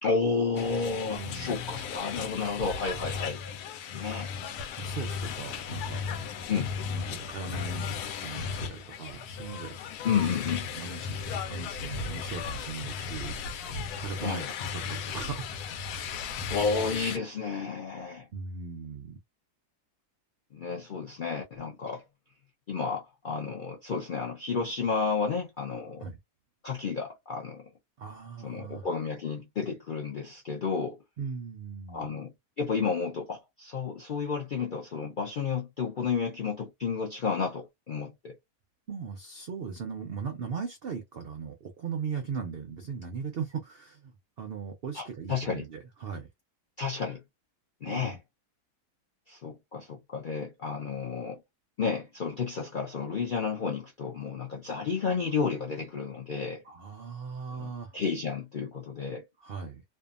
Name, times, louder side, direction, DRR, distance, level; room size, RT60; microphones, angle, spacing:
voice 1, 0.0-3.4 3.9-4.3 6.5-6.7 10.0-10.7 14.2-14.5 16.5-18.3 20.5-22.0 22.7-26.1 26.6-27.7 28.4-31.0 31.9-38.3 44.9-45.7 46.8-47.2 47.8-48.2 49.3-51.4 51.8-56.6 57.6-59.2, left 5 dB, 65° left, 0.5 m, -31 dB
sound 1, 0.6-17.2, left 6 dB, 80° left, 1.1 m, -36 dB
voice 2, 1.1-1.6 4.8-6.0 6.9-7.9 8.2-9.8 10.7-15.5 15.8-15.9 18.3-19.2 26.0-26.2 28.0-28.9 31.2-32.1 38.9-46.3 47.9-48.2 56.6-58.0 59.4-59.8, right 5 dB, 75° right, 0.5 m, -38 dB
2.7 x 2.2 x 2.3 m
omnidirectional pair, 1.7 m